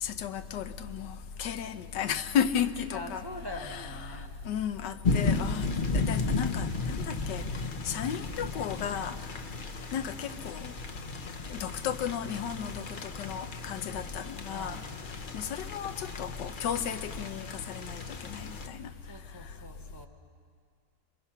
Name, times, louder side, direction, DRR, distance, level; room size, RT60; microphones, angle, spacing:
voice 1, 0.0-3.3 3.5-4.2 4.4-5.7 5.9-7.5 7.8-9.1 9.9-10.7 11.5-14.8 15.3-18.9, left 8 dB, 85° left, 10 dB, 1.4 m, -34 dB
voice 2, 2.9-4.3 14.5-15.1 19.0-20.1, left 1 dB, 15° right, 3 dB, 1.1 m, -43 dB
sound 1, 5.0-18.7, left 3 dB, 40° left, 0.8 m, -34 dB
27.5 x 22.0 x 5.7 m, 2.1 s
omnidirectional pair, 1.8 m